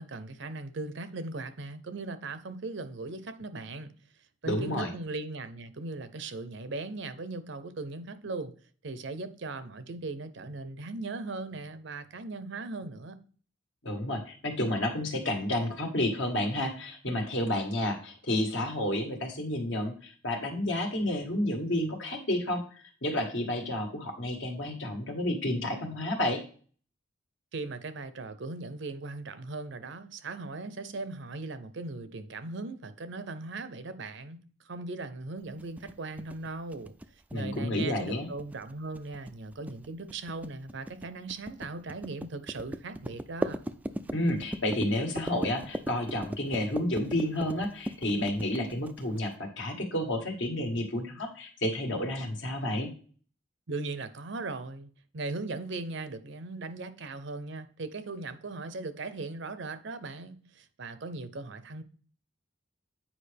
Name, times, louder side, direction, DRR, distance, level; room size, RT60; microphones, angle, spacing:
voice 1, 0.0-3.9 4.4-8.5 8.8-13.2 27.5-36.9 37.3-43.6 53.7-61.8, right 3 dB, 60° right, 0.7 m, -38 dB
voice 2, 4.5-4.9 13.8-26.4 37.3-38.3 44.1-52.9, left 1 dB, 65° left, 1.6 m, -30 dB
sound 1, 35.6-49.3, right 1 dB, 10° right, 0.3 m, -38 dB
8.7 x 4.9 x 3.4 m
head